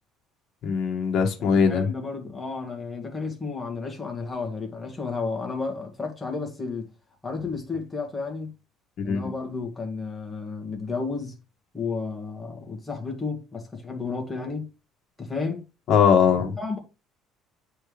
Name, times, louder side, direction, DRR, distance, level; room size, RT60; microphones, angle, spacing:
voice 1, 0.6-1.9 9.1-9.2 15.9-16.5, left 6 dB, 50° left, 1.6 m, -20 dB
voice 2, 1.4-6.9 7.2-8.5 9.0-11.3 11.7-14.7 15.2-15.6 16.6-16.8, left 4 dB, 10° left, 1.7 m, -32 dB
9.0 x 4.4 x 3.3 m
cardioid pair, 160°, 0 cm